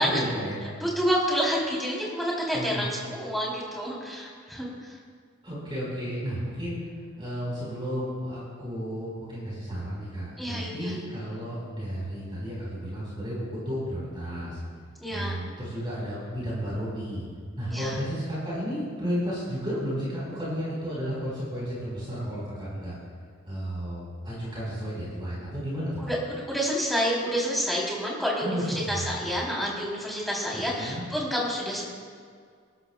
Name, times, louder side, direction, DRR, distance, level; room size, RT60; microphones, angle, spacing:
voice 1, 0.0-0.6 2.5-2.8 5.4-6.8 7.2-14.6 15.1-17.2 17.6-22.9 23.5-26.1 28.4-29.2 30.5-31.0, equal, 25° right, -7 dB, 4.4 m, -33 dB
voice 2, 0.8-4.7 10.4-11.0 15.0-15.4 17.7-18.0 26.1-26.2 26.5-31.8, equal, ahead, -5 dB, 3.3 m, -28 dB
28.0 x 12.0 x 2.3 m, 2.1 s
head